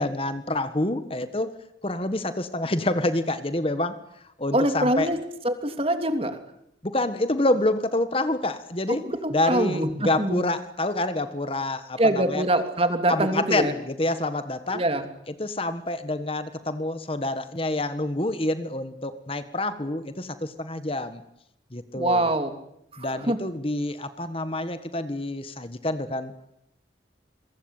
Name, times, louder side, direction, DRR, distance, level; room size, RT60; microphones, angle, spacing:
voice 1, 0.0-1.5 1.8-4.0 4.4-5.1 6.8-9.0 9.3-12.4 13.1-14.8 15.4-21.2 21.7-22.3 23.0-26.5, left 1 dB, 30° left, 11 dB, 1.5 m, -27 dB
voice 2, 4.5-5.2 5.4-6.4 9.0-10.4 12.0-13.7 14.7-15.0 22.0-22.5 22.9-23.4, right 1 dB, 30° right, 8 dB, 2.9 m, -24 dB
28.0 x 23.5 x 9.0 m, 0.78 s
head